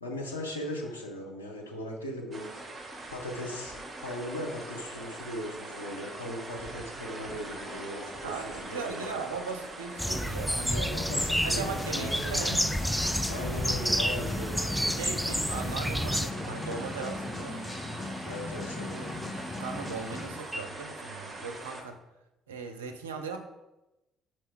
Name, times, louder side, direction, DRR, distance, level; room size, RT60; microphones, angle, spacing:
voice 1, 0.0-2.5 3.1-8.4 8.7-9.1 10.7-12.5 13.2-15.0 18.2-19.2, left 1 dB, 90° left, -1 dB, 0.8 m, -38 dB
sound 1, 2.3-21.8, right 2 dB, 30° right, 1.2 m, -42 dB
voice 2, 8.2-11.0 11.4-12.8 14.9-17.6 19.6-22.0 22.5-23.5, right 5 dB, 80° right, 5 dB, 0.5 m, -38 dB
sound 2, 10.0-16.3, equal, ahead, 0.4 m, -30 dB
sound 3, 10.9-20.6, left 2 dB, 20° left, 0.9 m, -38 dB
4.7 x 4.4 x 4.6 m, 1.0 s
figure-of-eight pair, 45°, 0 cm